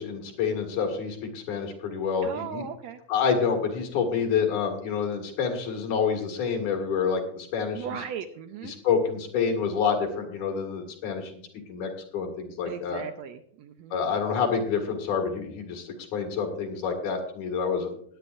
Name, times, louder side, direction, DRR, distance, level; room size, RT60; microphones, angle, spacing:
voice 1, 0.0-2.7 3.1-7.9 8.7-11.4 11.7-13.0 13.9-17.9, left 6 dB, 75° left, 2 dB, 3.3 m, -28 dB
voice 2, 2.2-3.0 7.7-8.7 12.7-14.0, right 8 dB, 80° right, 8 dB, 1.6 m, -37 dB
19.5 x 9.1 x 2.5 m, 0.66 s
omnidirectional pair, 3.5 m